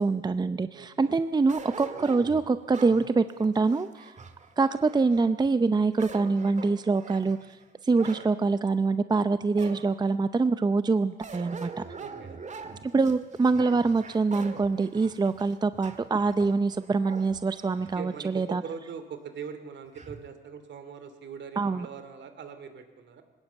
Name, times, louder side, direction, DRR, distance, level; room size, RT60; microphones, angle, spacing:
voice 1, 0.0-4.1 4.6-7.4 7.9-11.8 12.8-18.6 21.6-21.9, right 4 dB, 20° right, 12 dB, 0.6 m, -25 dB
voice 2, 0.7-1.2 12.0-12.4 18.0-23.2, right 6 dB, 65° right, 9 dB, 2.6 m, -41 dB
sound 1, 1.5-5.3 5.8-8.3 8.8-8.9 9.6-10.2 11.2-18.3 18.7-18.8 19.9-20.3, right 4 dB, 35° right, 2.0 m, -44 dB
20.0 x 18.0 x 8.1 m, 1.2 s
cardioid pair, 90°, 20 cm